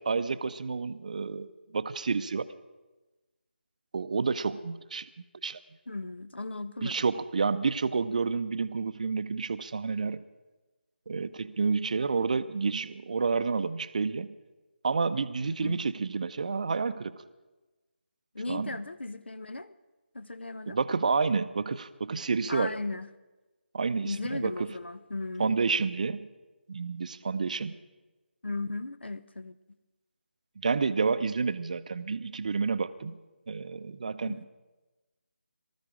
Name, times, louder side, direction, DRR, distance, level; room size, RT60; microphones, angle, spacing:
voice 1, 0.1-2.5 3.9-5.1 5.4-5.6 6.8-10.2 11.1-14.3 14.8-17.2 18.5-18.7 20.7-22.7 23.7-24.5 25.4-26.3 26.7-27.8 30.6-33.2 33.5-34.4, right 4 dB, 40° right, 13 dB, 0.6 m, -29 dB
voice 2, 5.9-7.0 15.4-15.8 18.3-19.8 20.1-20.8 22.5-23.1 24.0-25.6 28.4-29.6 34.2-34.4, left 2 dB, 70° left, 14 dB, 0.7 m, -36 dB
19.5 x 13.5 x 5.0 m, 1.1 s
figure-of-eight pair, 155°, 6 cm